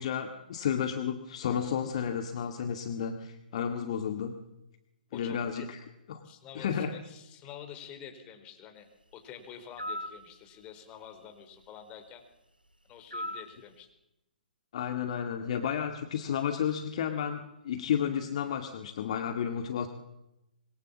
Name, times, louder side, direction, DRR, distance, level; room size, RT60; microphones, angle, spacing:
voice 1, 0.0-4.4 5.1-5.8 6.1-6.2 6.6-6.9 14.7-19.9, left 8 dB, 45° left, 6 dB, 2.1 m, -32 dB
voice 2, 5.1-5.7 6.2-8.9 9.1-12.2 12.8-13.9, left 8 dB, 20° left, 6 dB, 4.2 m, -48 dB
sound 1, 9.8-10.2 13.1-13.5, equal, 90° right, 3.2 m, -36 dB
26.0 x 22.5 x 7.4 m, 0.92 s
figure-of-eight pair, 125°, 5 cm